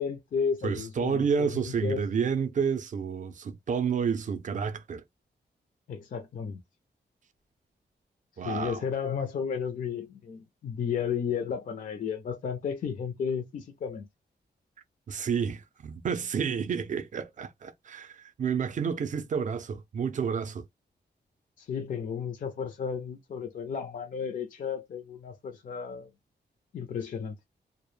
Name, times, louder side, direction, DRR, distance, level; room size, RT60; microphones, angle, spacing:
voice 1, 0.0-2.0 5.9-6.6 8.4-14.1 21.6-26.1 26.7-27.4, left 6 dB, 50° left, 0.4 m, -33 dB
voice 2, 0.6-5.0 8.4-8.8 15.1-20.6, right 6 dB, 45° right, 0.4 m, -30 dB
2.1 x 2.0 x 3.0 m
wide cardioid pair, 160°, 18 cm